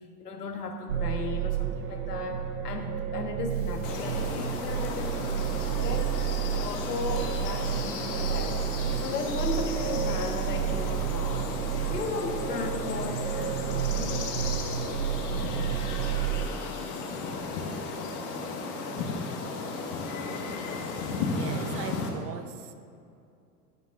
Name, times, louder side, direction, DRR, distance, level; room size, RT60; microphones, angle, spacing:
voice 1, 0.2-6.2 6.5-8.6 9.0-11.5 11.9-14.3, left 4 dB, 80° left, 5 dB, 1.3 m, -36 dB
sound 1, 0.9-16.5, right 10 dB, 70° right, 0.8 m, -31 dB
sound 2, 3.5-11.3, right 4 dB, 50° right, 2.6 m, -56 dB
sound 3, 3.8-22.1, left 4 dB, 40° left, 1.5 m, -35 dB
voice 2, 21.3-22.7, right 8 dB, 30° right, 8 dB, 0.6 m, -39 dB
15.0 x 10.0 x 2.5 m, 2.5 s
figure-of-eight pair, 90°, 47 cm